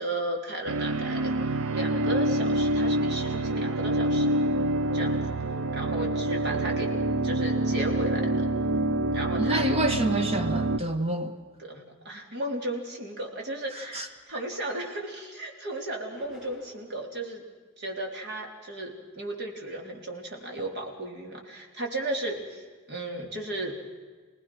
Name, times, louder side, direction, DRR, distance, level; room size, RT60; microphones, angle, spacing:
voice 1, 0.0-4.4 4.9-5.3 5.7-7.0 7.2-8.5 9.1-9.7 11.6-17.4 17.8-23.8, right 1 dB, 55° right, 1 dB, 3.8 m, -35 dB
sound 1, 0.7-10.8, right 1 dB, 80° right, 0.7 m, -26 dB
voice 2, 9.4-11.3 13.9-14.1, right 1 dB, 30° right, 6 dB, 1.5 m, -27 dB
sound 2, 16.1-17.0, right 1 dB, ahead, 7.7 m, -47 dB
29.0 x 19.0 x 6.2 m, 1.5 s
head